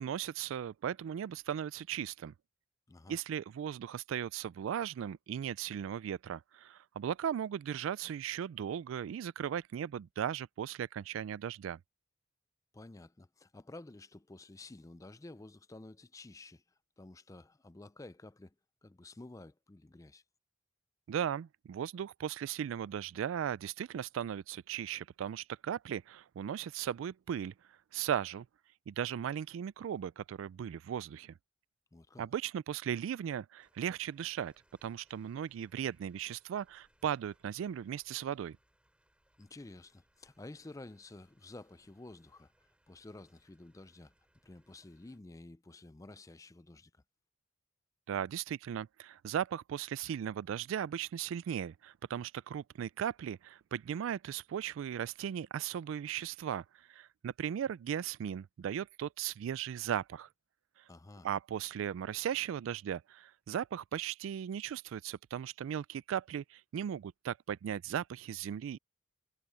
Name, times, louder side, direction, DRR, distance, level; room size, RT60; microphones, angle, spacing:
voice 1, 0.0-2.3 3.1-11.8 21.1-27.5 27.9-28.5 28.9-31.3 32.2-34.5 34.8-38.6 48.1-60.3 61.2-68.8, right 9 dB, 80° right, 0.3 m, -37 dB
voice 2, 2.9-3.2 12.7-16.6 17.0-18.5 18.8-20.2 31.9-32.3 39.4-44.1 44.4-46.9 60.9-61.3, left 2 dB, 15° left, 0.4 m, -51 dB
sound 1, 33.6-45.2, right 1 dB, 5° right, 5.0 m, -73 dB
head